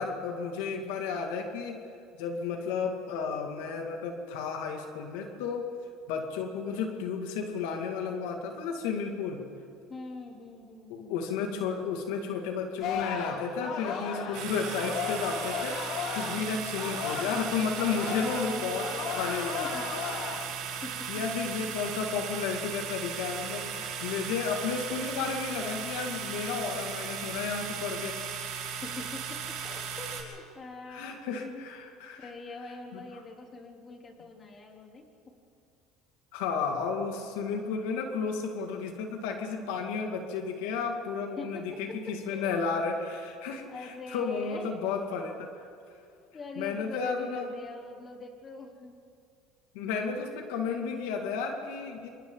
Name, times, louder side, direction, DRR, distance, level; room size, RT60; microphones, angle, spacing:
voice 1, 0.0-1.8 2.2-5.7 6.1-9.4 10.9-18.9 19.2-20.1 20.7-20.8 21.1-28.2 30.9-32.3 32.9-33.0 36.3-45.3 45.6-45.7 46.6-47.5 49.7-52.1, left 5 dB, 85° left, 3 dB, 2.3 m, -33 dB
voice 2, 9.9-11.1 18.2-19.3 19.6-19.8 20.8-21.1 28.7-31.7 32.2-35.1 41.4-42.6 43.7-45.0 46.3-49.0, left 3 dB, 30° left, 1 dB, 3.5 m, -43 dB
Singing, 12.8-17.5 17.8-20.6 21.0-21.3, left 6 dB, 65° left, 2.7 m, -36 dB
sound 1, 14.3-30.2, right 7 dB, 75° right, 7.1 m, -37 dB
28.0 x 25.5 x 4.0 m, 2.4 s
supercardioid pair, 120°, 0 cm